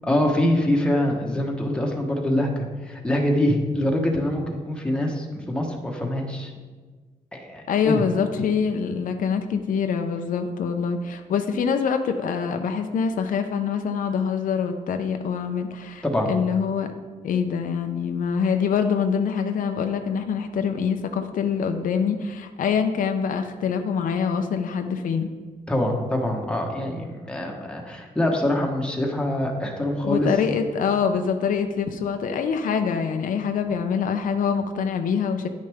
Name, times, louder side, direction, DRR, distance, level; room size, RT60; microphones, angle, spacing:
voice 1, 0.0-6.5 7.3-8.0 16.0-16.3 25.7-30.3, left 1 dB, 5° left, 0 dB, 1.1 m, -24 dB
voice 2, 7.7-16.9 17.2-25.3 30.0-35.5, left 6 dB, 80° left, 6 dB, 0.6 m, -25 dB
9.9 x 6.5 x 3.5 m, 1.4 s
wide cardioid pair, 140°, 14 cm